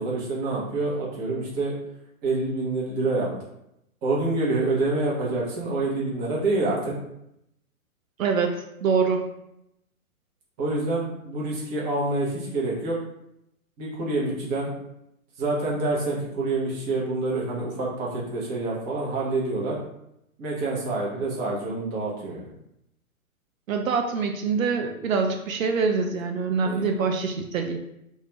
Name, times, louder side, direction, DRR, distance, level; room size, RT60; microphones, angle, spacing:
voice 1, 0.0-1.7 2.2-3.3 4.0-6.9 10.6-13.0 13.8-14.7 15.4-19.8 20.4-22.4 26.6-26.9, right 2 dB, 20° right, -5 dB, 0.6 m, -27 dB
voice 2, 8.2-9.3 23.7-27.8, right 5 dB, 65° right, 3 dB, 0.5 m, -25 dB
2.4 x 2.2 x 3.0 m, 0.81 s
hypercardioid pair, 125°, 44 cm